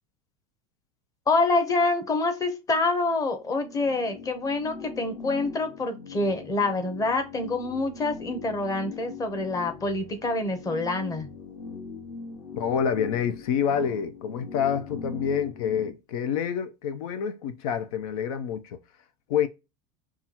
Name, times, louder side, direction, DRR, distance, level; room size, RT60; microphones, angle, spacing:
voice 1, 1.3-11.3, left 3 dB, 20° left, 0.8 m, -26 dB
sound 1, 3.4-15.9, left 5 dB, 55° left, 2.6 m, -41 dB
voice 2, 12.5-18.8 19.3-19.5, left 8 dB, 80° left, 0.5 m, -27 dB
5.6 x 2.4 x 2.9 m
supercardioid pair, 140°, 18 cm